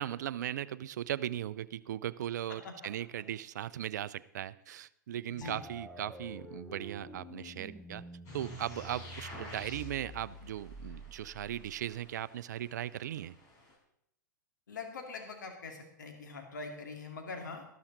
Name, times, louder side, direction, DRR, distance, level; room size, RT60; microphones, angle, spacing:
voice 1, 0.0-8.0 8.3-13.4, right 11 dB, 65° right, 18 dB, 0.5 m, -38 dB
voice 2, 5.3-5.6 14.7-17.6, left 4 dB, 70° left, 3 dB, 2.4 m, -43 dB
sound 1, 5.4-12.1, equal, ahead, 1.2 m, -49 dB
sound 2, 8.3-13.8, left 1 dB, 35° left, 4.6 m, -51 dB
13.0 x 13.0 x 3.9 m, 0.76 s
figure-of-eight pair, 105°, 10 cm